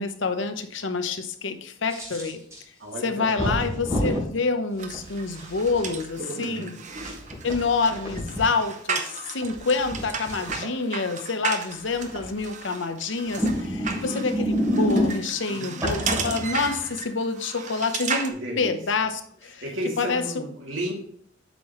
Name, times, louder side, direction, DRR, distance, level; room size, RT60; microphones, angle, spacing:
voice 1, 0.0-2.4 3.0-6.8 7.4-19.6 20.0-20.4, left 4 dB, 70° left, 0.8 m, -27 dB
sound 1, 1.9-2.6 3.4-4.2 4.9-5.9 6.9-8.4 9.5-10.5 12.0-12.4 13.2-15.4 15.8-16.9, equal, 15° right, 3.1 m, -28 dB
voice 2, 2.8-3.6 6.4-6.8 15.5-15.8 18.3-18.8 19.6-20.9, equal, 80° right, 2.5 m, -33 dB
sound 2, 4.8-18.3, right 5 dB, 40° right, 0.8 m, -34 dB
8.1 x 5.7 x 3.1 m
head